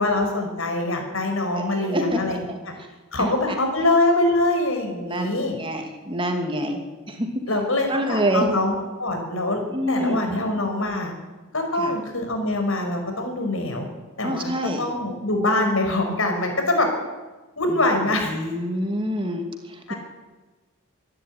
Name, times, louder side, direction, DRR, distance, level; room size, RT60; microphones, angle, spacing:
voice 1, 0.0-2.7 3.1-5.6 7.5-9.6 9.9-11.1 11.5-13.9 14.2-14.5 14.8-16.9 17.6-18.4 19.9-20.0, left 2 dB, 70° left, 4 dB, 5.6 m, -24 dB
voice 2, 1.6-2.6 3.2-3.3 5.0-7.4 7.9-8.5 9.7-10.3 11.8-11.9 14.2-14.8 17.7-17.8 18.1-19.9, equal, 25° right, 4 dB, 2.7 m, -27 dB
25.5 x 12.0 x 9.7 m, 1.2 s
head